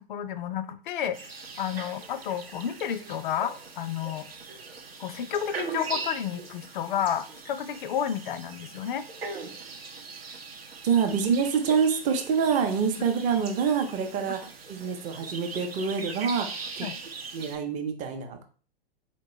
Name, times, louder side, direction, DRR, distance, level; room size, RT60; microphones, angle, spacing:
voice 1, 0.1-1.2 1.6-4.3 5.0-9.0 14.3-14.4 16.8-17.0, left 9 dB, 55° left, 13 dB, 0.4 m, -31 dB
sound 1, 1.1-17.6, right 4 dB, 80° right, 0.7 m, -40 dB
voice 2, 10.8-16.9 17.3-18.4, right 6 dB, 25° right, 6 dB, 0.6 m, -26 dB
4.2 x 3.0 x 2.8 m, 0.40 s
figure-of-eight pair, 105°, 30 cm